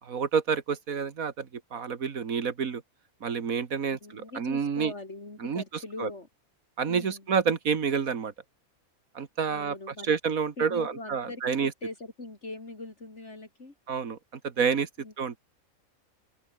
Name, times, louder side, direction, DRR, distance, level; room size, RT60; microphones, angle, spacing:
voice 1, 0.0-2.8 3.2-4.9 5.4-5.6 6.0-6.1 6.8-8.3 9.2-9.8 10.0-11.7 13.9-14.2 14.4-14.9 15.2-15.4, right 6 dB, 75° right, 2.0 m, -28 dB
voice 2, 3.9-6.3 6.9-7.2 9.5-10.1 10.6-13.7 15.0-15.1, left 2 dB, 55° left, 4.0 m, -41 dB
open air
omnidirectional pair, 1.5 m